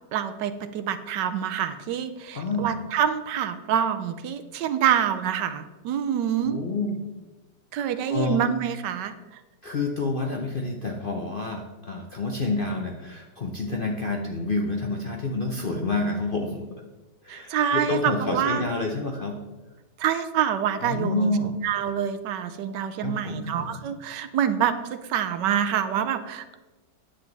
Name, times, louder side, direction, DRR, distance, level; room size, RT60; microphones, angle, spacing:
voice 1, 0.1-6.6 7.7-9.1 17.3-18.6 20.0-21.3 21.6-26.6, right 9 dB, 75° right, 10 dB, 1.3 m, -26 dB
voice 2, 2.3-2.7 6.4-7.0 8.1-8.4 9.6-16.8 17.2-19.4 20.8-21.5 23.0-23.7, left 2 dB, 50° left, 1 dB, 0.6 m, -28 dB
9.7 x 7.8 x 4.0 m, 1.1 s
omnidirectional pair, 1.9 m